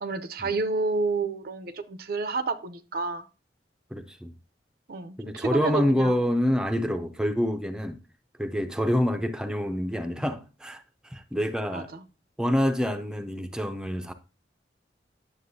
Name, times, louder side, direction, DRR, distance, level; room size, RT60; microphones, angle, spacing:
voice 1, 0.0-3.2 4.9-6.1 11.7-12.0, right 3 dB, 60° right, 0.6 m, -30 dB
voice 2, 3.9-4.3 5.2-8.0 8.4-11.9 12.4-14.1, equal, 5° right, 0.5 m, -27 dB
9.5 x 7.1 x 2.7 m
head